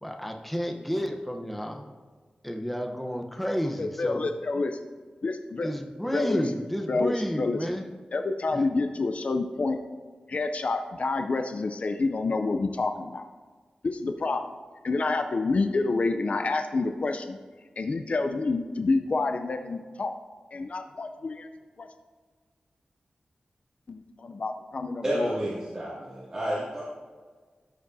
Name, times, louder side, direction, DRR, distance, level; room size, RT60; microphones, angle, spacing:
voice 1, 0.0-1.9 2.4-4.3 5.6-7.9 8.5-8.6, equal, 5° left, 2 dB, 0.8 m, -31 dB
voice 2, 3.8-4.8 5.2-5.7 6.1-6.4 6.9-7.6 8.1-9.8 10.3-13.2 13.8-14.4 14.8-17.4 17.8-20.2 20.5-21.5 21.8-21.9 23.9-25.4, left 3 dB, 55° left, 6 dB, 0.4 m, -28 dB
voice 3, 25.0-26.8, equal, 30° right, -10 dB, 2.4 m, -30 dB
13.5 x 5.0 x 2.7 m, 1.5 s
wide cardioid pair, 85°, 3 cm